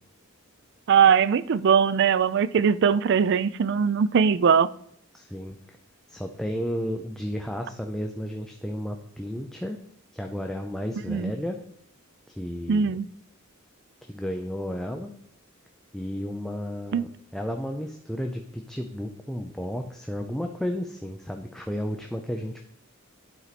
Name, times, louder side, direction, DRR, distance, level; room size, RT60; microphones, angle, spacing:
voice 1, 0.9-4.7 11.1-11.3 12.7-13.0 16.9-17.0, right 7 dB, 55° right, 0.3 m, -20 dB
voice 2, 5.1-5.6 6.1-9.8 10.1-11.6 12.4-13.0 14.0-15.1 15.9-22.7, equal, ahead, 0.5 m, -33 dB
11.0 x 4.6 x 4.1 m
head